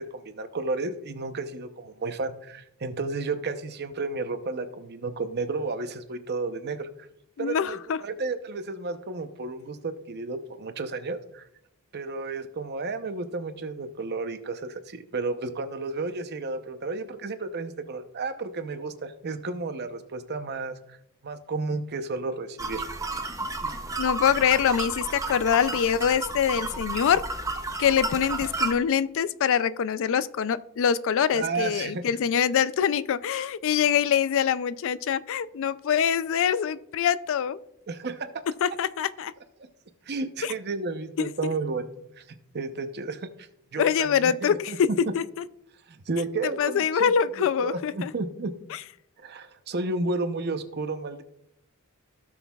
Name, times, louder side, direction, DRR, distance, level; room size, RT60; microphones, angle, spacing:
voice 1, 0.0-6.9 7.4-11.5 11.9-21.0 21.2-22.9 31.3-32.2 37.9-38.3 40.1-41.8 42.2-43.3 43.7-44.8 45.9-48.5 49.2-51.2, right 3 dB, 50° right, 9 dB, 0.7 m, -32 dB
voice 2, 7.4-8.0 24.0-27.2 27.8-37.6 38.6-39.3 40.4-40.5 41.2-41.5 43.8-44.9 45.1-45.4 46.6-48.1, left 8 dB, 65° left, 16 dB, 0.4 m, -24 dB
sound 1, 22.6-28.7, right 2 dB, 15° right, 0.6 m, -32 dB
16.5 x 6.2 x 2.3 m, 0.80 s
head